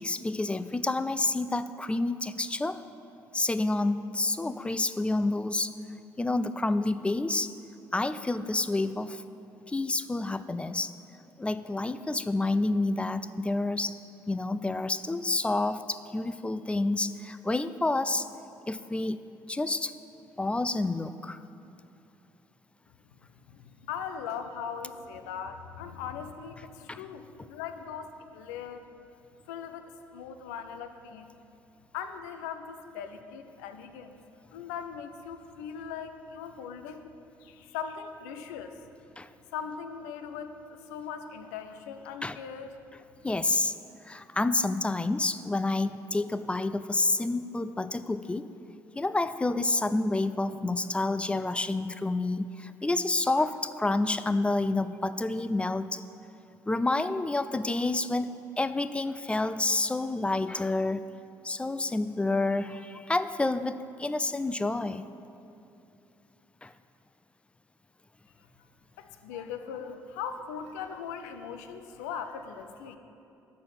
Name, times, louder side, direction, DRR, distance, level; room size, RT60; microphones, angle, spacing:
voice 1, 0.0-2.8 3.3-5.7 6.2-7.5 7.9-9.2 9.7-10.9 11.4-14.0 14.3-18.3 18.7-19.2 19.5-20.0 20.4-21.4 26.9-27.0 39.2-39.3 42.2-42.4 43.2-43.8 44.0-48.5 49.0-56.0 56.7-61.0 61.4-65.1 66.6-66.7 69.3-69.4, left 2 dB, 10° left, 12 dB, 0.3 m, -29 dB
voice 2, 23.5-28.8 29.5-31.3 31.9-34.2 34.5-38.8 39.5-42.7 69.0-73.0, left 7 dB, 70° left, 8 dB, 0.5 m, -40 dB
6.7 x 5.6 x 7.3 m, 2.7 s
figure-of-eight pair, 45°, 10 cm